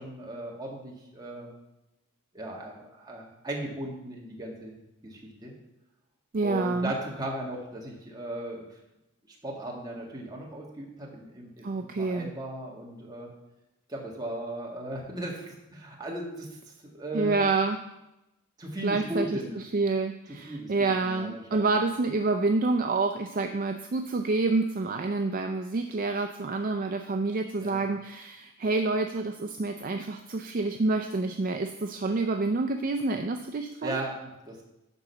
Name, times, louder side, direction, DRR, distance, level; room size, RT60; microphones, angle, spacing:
voice 1, 0.0-1.5 2.3-4.8 5.0-5.5 6.4-8.8 9.3-13.3 13.9-17.4 18.6-19.6 20.4-21.8 27.6-27.8 33.8-34.6, right 1 dB, 20° right, -2 dB, 1.7 m, -37 dB
voice 2, 6.3-6.9 11.6-12.3 17.1-17.8 18.8-34.0, right 3 dB, 40° right, 6 dB, 0.4 m, -28 dB
10.5 x 3.9 x 6.8 m, 0.95 s
head